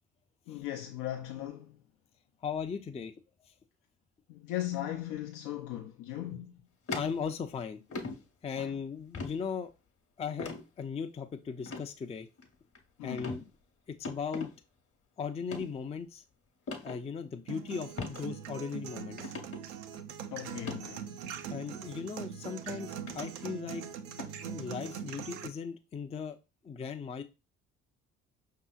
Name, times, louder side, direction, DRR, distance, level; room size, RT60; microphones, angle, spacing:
voice 1, 0.5-1.8 4.3-6.5 8.6-8.8 13.0-13.4 20.3-21.2, left 13 dB, 70° left, 0.6 m, -38 dB
voice 2, 2.4-3.1 6.3-6.4 6.9-7.8 8.4-9.7 10.2-12.3 13.0-13.4 13.9-14.5 15.2-16.2 16.8-19.3 21.5-23.8 24.5-26.4 26.6-27.2, left 6 dB, 20° left, 0.4 m, -37 dB
sound 1, 6.9-7.5 7.9-8.2 9.1-9.4 10.4-10.6 11.6-11.8 12.4-12.8 13.2-13.4 14.0-14.5 15.4-15.7 16.7-17.0 18.0-18.2 18.6-18.7 19.2-19.6 20.5-20.8 21.9-22.0 23.1-23.3 24.2-24.4, left 3 dB, 40° left, 1.0 m, -39 dB
sound 2, 17.5-25.5, right 8 dB, 85° right, 0.5 m, -42 dB
5.4 x 2.8 x 2.3 m
hypercardioid pair, 55°, 33 cm